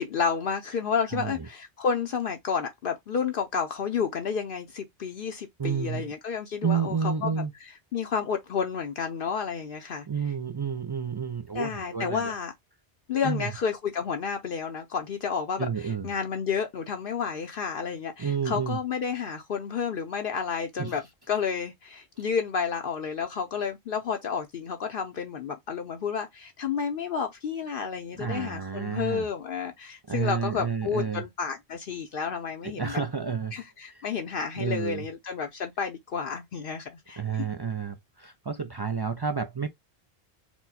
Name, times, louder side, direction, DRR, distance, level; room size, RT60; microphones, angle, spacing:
voice 1, 0.0-7.4 7.9-10.0 11.5-12.5 13.1-21.0 21.3-33.0 33.5-37.2, left 6 dB, 65° left, 0.8 m, -31 dB
voice 2, 1.1-1.5 5.6-6.1 6.6-7.5 10.1-12.3 13.2-13.5 15.6-16.1 18.2-18.8 20.8-21.0 22.2-22.3 28.2-29.3 30.1-31.2 32.6-33.6 33.9-34.0 34.6-35.1 37.2-39.7, right 6 dB, 45° right, 0.3 m, -30 dB
4.5 x 2.1 x 4.0 m
omnidirectional pair, 1.0 m